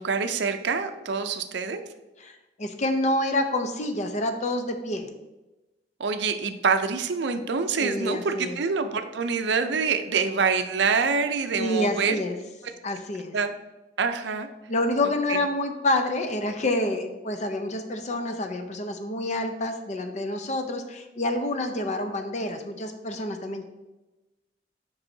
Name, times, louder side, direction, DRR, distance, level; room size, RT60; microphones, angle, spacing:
voice 1, 0.0-1.8 6.0-12.2 13.3-13.5 14.0-14.5 15.0-15.4, right 5 dB, 65° right, 8 dB, 0.5 m, -26 dB
voice 2, 2.2-5.1 7.8-8.6 11.6-12.4 12.8-13.3 14.7-23.6, left 1 dB, 40° left, 6 dB, 0.6 m, -28 dB
7.1 x 5.4 x 2.7 m, 1.1 s
head